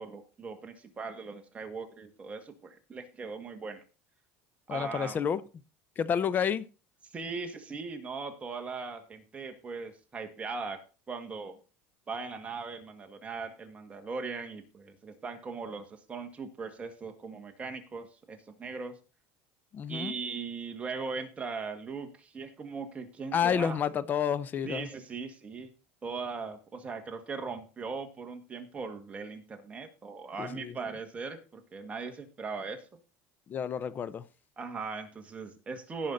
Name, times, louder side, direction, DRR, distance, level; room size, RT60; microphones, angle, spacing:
voice 1, 0.0-3.8 4.7-5.2 7.1-11.6 12.1-19.0 19.9-23.8 24.6-25.7 26.0-32.9 34.6-36.1, right 4 dB, 20° right, 1.8 m, -39 dB
voice 2, 4.7-5.4 6.0-6.7 19.7-20.2 23.3-24.9 30.4-30.8 33.5-34.3, left 8 dB, 30° left, 0.7 m, -30 dB
17.0 x 5.7 x 4.0 m
cardioid pair, 140°, 6 cm